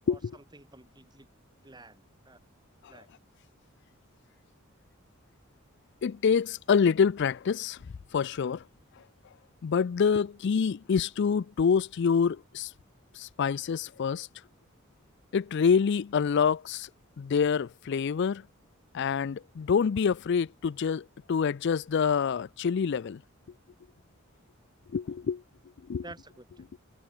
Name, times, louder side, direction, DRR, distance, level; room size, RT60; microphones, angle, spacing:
voice 1, 0.1-1.3 1.6-2.4 2.9-3.1 26.0-26.7, right 2 dB, 20° right, 3.4 m, -50 dB
voice 2, 6.0-7.8 8.1-8.6 9.6-12.7 13.1-14.3 15.3-16.9 17.2-18.5 18.9-23.2 24.9-25.4 25.9-26.0, left 6 dB, 55° left, 0.4 m, -26 dB
head